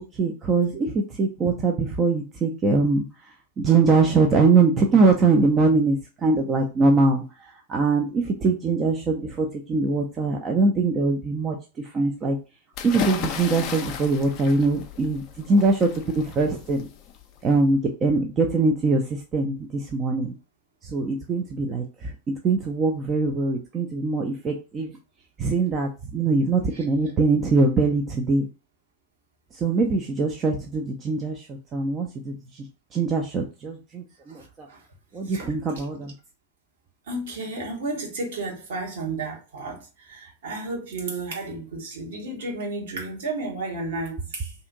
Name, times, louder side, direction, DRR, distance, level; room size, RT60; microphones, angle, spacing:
voice 1, 0.0-12.4 12.8-16.9 17.4-20.3 20.8-22.1 22.4-24.9 25.4-28.5 29.5-34.7 35.1-36.1, right 3 dB, 25° right, 0.5 m, -23 dB
sound 1, 12.7-17.6, left 7 dB, 40° left, 0.5 m, -34 dB
voice 2, 34.3-34.8 35.2-35.5 37.1-44.5, right 2 dB, 60° right, 1.1 m, -32 dB
2.7 x 2.5 x 3.8 m
figure-of-eight pair, 90°, 0 cm